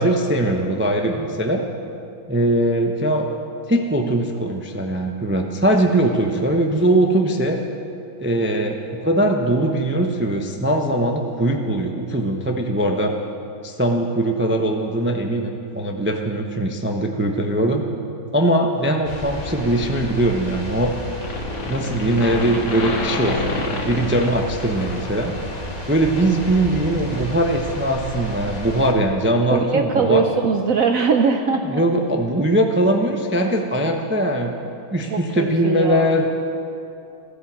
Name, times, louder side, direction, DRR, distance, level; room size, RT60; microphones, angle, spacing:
voice 1, 0.0-1.6 2.3-3.3 3.7-7.6 8.2-13.1 13.6-17.8 18.3-20.9 21.7-25.3 25.9-30.2 31.7-34.6 34.9-36.2, right 1 dB, 10° right, 2 dB, 0.5 m, -21 dB
sound 1, 19.0-28.9, left 1 dB, 20° left, 1.8 m, -33 dB
sound 2, 20.6-20.9 21.2-25.6, left 3 dB, 65° left, 2.1 m, -29 dB
voice 2, 29.5-31.8 35.1-36.2, right 5 dB, 60° right, 5 dB, 0.9 m, -21 dB
13.5 x 13.5 x 7.5 m, 2.6 s
omnidirectional pair, 2.0 m